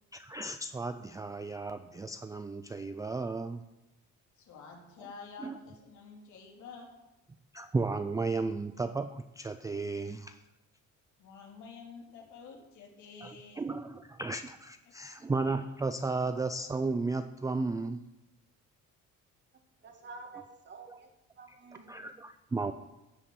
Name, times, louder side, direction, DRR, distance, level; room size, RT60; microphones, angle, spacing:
voice 1, 0.1-3.6 5.4-5.6 7.5-10.4 13.2-18.0 20.9-21.0 21.5-21.6 21.9-22.7, right 3 dB, 10° right, 9 dB, 0.4 m, -34 dB
voice 2, 4.4-6.9 11.2-13.7, left 5 dB, 65° left, 0 dB, 3.8 m, -49 dB
voice 3, 19.8-21.1 21.4-22.1, right 3 dB, 35° right, 4 dB, 2.1 m, -49 dB
13.0 x 7.3 x 8.8 m, 0.98 s
cardioid pair, 165°, 31 cm